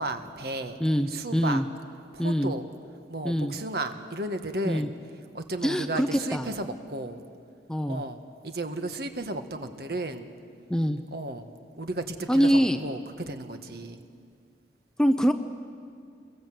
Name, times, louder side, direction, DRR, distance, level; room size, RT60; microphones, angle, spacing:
voice 1, 0.0-0.8 1.1-1.6 2.1-2.6 3.1-4.9 5.3-7.2 7.9-10.3 11.1-11.5 11.8-14.0, right 2 dB, 55° right, 7 dB, 1.7 m, -34 dB
voice 2, 0.8-1.7 2.2-2.5 3.2-3.5 4.6-4.9 5.6-6.5 7.7-8.0 10.7-11.0 12.3-12.8 15.0-15.3, equal, 5° left, 8 dB, 0.7 m, -24 dB
27.5 x 22.5 x 7.9 m, 2.3 s
head